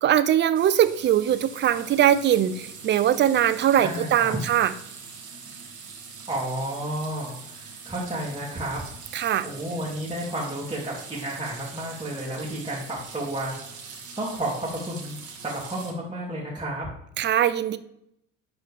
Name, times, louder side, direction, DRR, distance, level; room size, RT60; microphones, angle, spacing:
voice 1, 0.0-4.7 9.1-9.5 17.2-17.8, right 10 dB, 30° right, 13 dB, 0.5 m, -21 dB
sound 1, 0.5-15.9, right 5 dB, 50° right, 1.9 m, -43 dB
voice 2, 3.8-4.4 6.3-8.8 9.4-13.6 14.2-16.9, right 1 dB, 10° right, -7 dB, 2.0 m, -31 dB
10.5 x 4.0 x 3.3 m, 0.75 s
hypercardioid pair, 65°, 38 cm